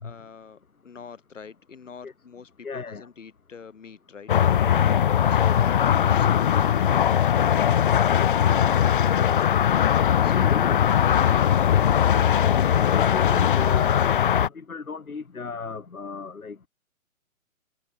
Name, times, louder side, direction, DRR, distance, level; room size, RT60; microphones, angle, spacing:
voice 1, 0.0-4.3 5.3-7.3 11.1-12.1, left 6 dB, 60° left, 5.1 m, -45 dB
voice 2, 2.6-3.1 4.7-5.2 10.2-10.8 12.5-16.7, left 4 dB, 85° left, 1.4 m, -35 dB
sound 1, 4.3-14.5, left 9 dB, 40° left, 0.8 m, -20 dB
figure-of-eight pair, 135°, 41 cm